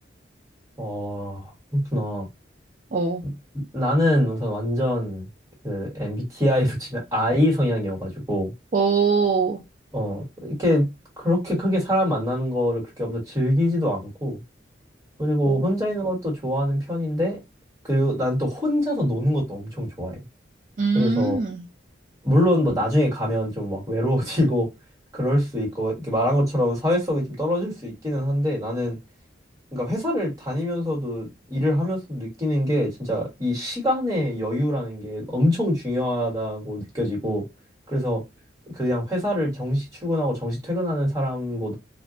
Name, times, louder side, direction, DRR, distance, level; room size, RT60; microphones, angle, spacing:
voice 1, 0.8-2.3 3.2-5.3 5.6-8.5 9.9-10.9 11.2-14.4 15.2-17.4 17.9-20.2 20.9-21.4 22.2-24.7 25.1-29.0 29.7-37.4 37.9-38.2 38.7-41.7, equal, 15° right, 1.3 m, -24 dB
voice 2, 2.9-3.2 8.7-9.6 15.5-15.6 20.8-21.6, right 4 dB, 40° right, 0.4 m, -22 dB
2.2 x 2.1 x 3.7 m
head